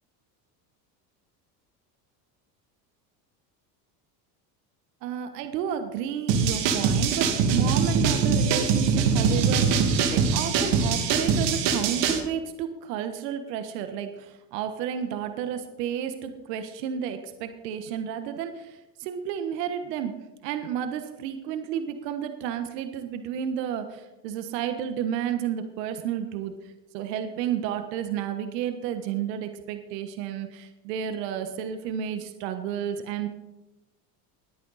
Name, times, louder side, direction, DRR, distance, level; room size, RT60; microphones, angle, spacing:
voice 1, 5.0-20.2 20.4-26.5 26.9-33.3, right 9 dB, 80° right, 8 dB, 1.4 m, -31 dB
sound 1, 6.3-12.2, right 5 dB, 60° right, 2.5 m, -23 dB
20.5 x 8.7 x 4.2 m, 0.98 s
supercardioid pair, 105°, 48 cm